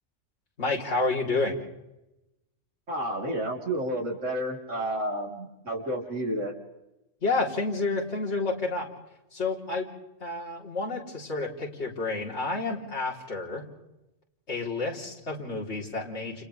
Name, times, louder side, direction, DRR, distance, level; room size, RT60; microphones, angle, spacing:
voice 1, 0.6-1.6 7.2-8.9 9.3-9.9 10.2-13.6 14.5-16.4, left 3 dB, 60° left, -4 dB, 4.1 m, -30 dB
voice 2, 2.9-6.5, right 1 dB, 75° right, -1 dB, 4.0 m, -31 dB
30.0 x 29.0 x 3.4 m, 0.93 s
omnidirectional pair, 1.3 m